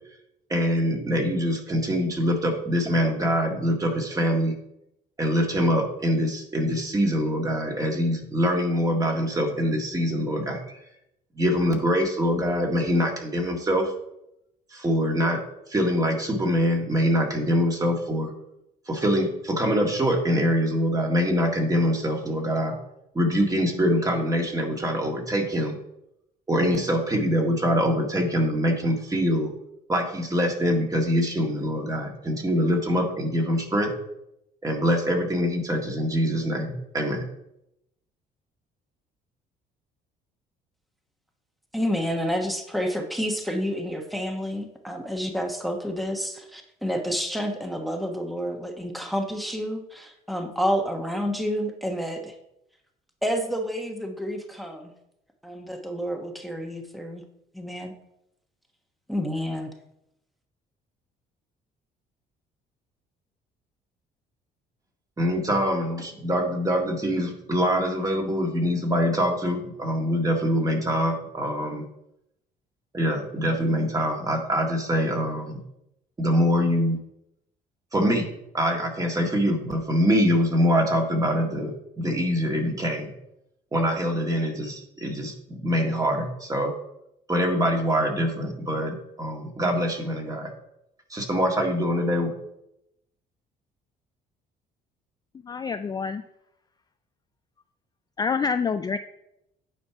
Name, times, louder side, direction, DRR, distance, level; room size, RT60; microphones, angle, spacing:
voice 1, 0.5-4.5 5.2-10.8 11.4-13.9 14.7-15.4 15.7-18.3 18.9-22.8 23.2-25.7 26.5-29.5 29.9-33.9 34.6-37.2 65.2-71.8 72.9-75.6 76.2-77.0 77.9-78.3 78.5-83.1 83.7-85.3 85.6-86.7 87.3-90.5 91.1-92.3, equal, 20° right, 2 dB, 1.8 m, -24 dB
voice 2, 41.7-52.4 53.2-54.9 55.4-57.2 57.5-57.9 59.1-59.7, equal, ahead, 3 dB, 1.1 m, -29 dB
voice 3, 95.4-96.2 98.2-99.0, left 5 dB, 25° left, 9 dB, 0.3 m, -26 dB
9.4 x 4.4 x 5.7 m, 0.83 s
cardioid pair, 110°, 17 cm